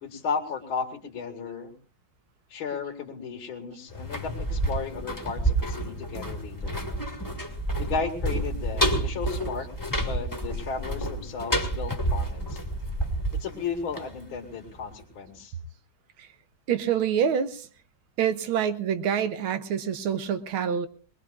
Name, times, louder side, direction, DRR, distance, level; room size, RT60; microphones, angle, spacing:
voice 1, 0.0-1.7 2.5-6.8 7.8-9.7 10.0-12.6 13.3-15.6, left 5 dB, 85° left, 1 dB, 2.6 m, -34 dB
sound 1, 3.9-14.7 15.0-15.1, right 1 dB, 10° left, 1.6 m, -29 dB
voice 2, 16.7-17.7 18.2-20.9, right 8 dB, 85° right, 10 dB, 1.8 m, -26 dB
22.0 x 21.0 x 2.4 m, 0.38 s
omnidirectional pair, 2.2 m